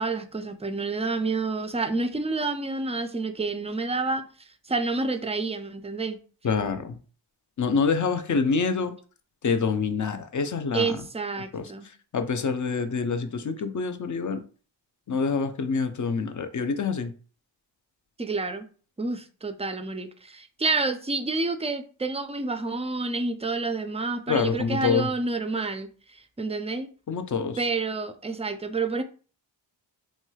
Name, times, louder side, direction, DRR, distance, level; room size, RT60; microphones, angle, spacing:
voice 1, 0.0-4.2 4.7-6.2 10.7-11.9 18.2-18.7 19.0-26.9 27.6-29.0, right 3 dB, 15° right, 0.4 m, -29 dB
voice 2, 6.4-7.0 7.6-8.9 9.4-11.0 11.5-14.4 15.1-17.1 24.3-25.1 27.1-27.6, left 5 dB, 40° left, 0.5 m, -26 dB
3.2 x 2.9 x 2.3 m
cardioid pair, 45°, 46 cm